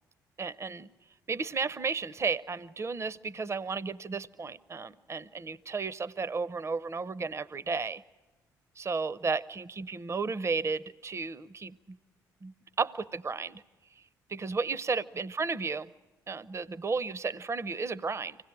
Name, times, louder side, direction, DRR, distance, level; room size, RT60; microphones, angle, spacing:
voice 1, 0.4-0.9 1.3-8.0 8.8-12.0 12.4-13.6 14.0-14.1 14.3-15.9 16.3-18.4, right 4 dB, 30° right, 18 dB, 0.7 m, -33 dB
25.5 x 17.5 x 8.9 m, 1.1 s
hypercardioid pair, 45°, 9 cm